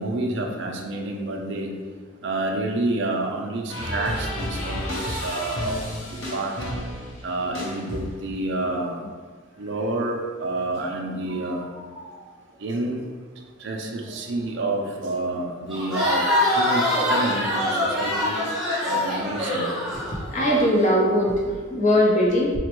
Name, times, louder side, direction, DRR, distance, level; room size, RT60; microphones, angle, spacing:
voice 1, 0.0-1.7 2.2-5.8 6.3-6.5 7.2-9.0 9.6-11.7 12.6-13.0 13.6-18.4 18.9-19.7, right 2 dB, 60° right, 1 dB, 0.4 m, -28 dB
sound 1, 3.7-8.4, equal, 85° left, 0.8 m, -31 dB
voice 2, 11.9-12.3 19.9-22.6, equal, 35° left, -3 dB, 0.7 m, -21 dB
Crowd, 15.7-20.7, left 1 dB, ahead, 0.8 m, -24 dB
4.1 x 2.2 x 2.9 m, 1.5 s
head